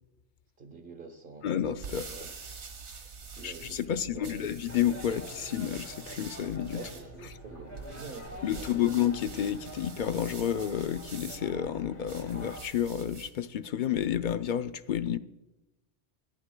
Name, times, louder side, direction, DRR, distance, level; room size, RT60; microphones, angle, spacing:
voice 1, 0.6-1.5 1.8-2.3 3.4-4.5 6.7-9.0, right 3 dB, 50° right, 1.2 m, -47 dB
voice 2, 1.4-2.1 3.4-6.8 8.4-15.2, left 10 dB, 60° left, 0.5 m, -30 dB
sound 1, 1.5-13.4, right 5 dB, 75° right, 1.6 m, -46 dB
sound 2, 4.7-12.6, left 1 dB, 10° left, 2.6 m, -47 dB
26.0 x 11.0 x 2.3 m
omnidirectional pair, 1.2 m